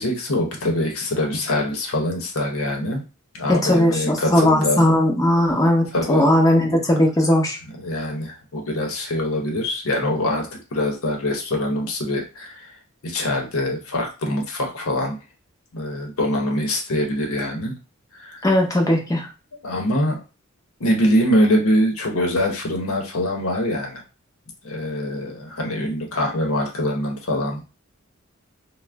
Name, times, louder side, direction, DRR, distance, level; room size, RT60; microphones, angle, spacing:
voice 1, 0.0-3.0 3.3-5.0 5.9-6.4 7.8-12.7 13.0-15.2 15.7-17.7 18.2-18.4 19.6-20.2 20.8-24.0 24.6-27.6, left 1 dB, 80° left, 1 dB, 0.7 m, -23 dB
voice 2, 3.5-7.6 18.4-19.3, left 1 dB, 15° left, 0 dB, 0.6 m, -18 dB
2.4 x 2.0 x 3.3 m, 0.31 s
head